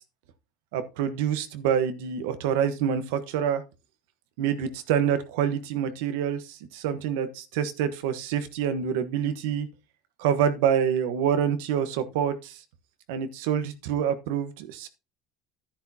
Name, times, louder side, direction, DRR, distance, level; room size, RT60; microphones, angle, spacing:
voice 1, 0.7-3.6 4.4-9.7 10.2-12.5 13.1-14.9, right 8 dB, 90° right, 1.2 m, -26 dB
10.0 x 10.0 x 2.8 m
cardioid pair, 145°, 0 cm